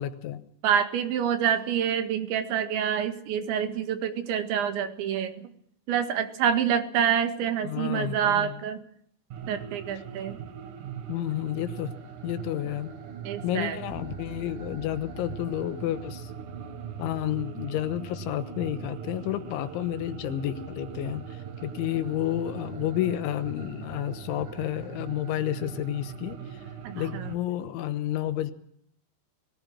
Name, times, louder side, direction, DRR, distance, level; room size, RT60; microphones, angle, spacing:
voice 1, 0.0-0.4 7.6-8.5 11.1-11.9 12.2-12.9 13.4-16.3 17.0-26.4 26.9-28.5, left 12 dB, 90° left, 12 dB, 3.5 m, -30 dB
voice 2, 0.6-5.5 5.9-8.8 9.5-10.4 13.3-13.8 26.8-27.3, right 8 dB, 75° right, 8 dB, 4.1 m, -27 dB
sound 1, 9.3-27.4, right 8 dB, 55° right, 2.8 m, -40 dB
sound 2, 13.9-21.4, left 1 dB, 25° left, 2.6 m, -50 dB
22.0 x 18.5 x 7.6 m, 0.67 s
omnidirectional pair, 5.4 m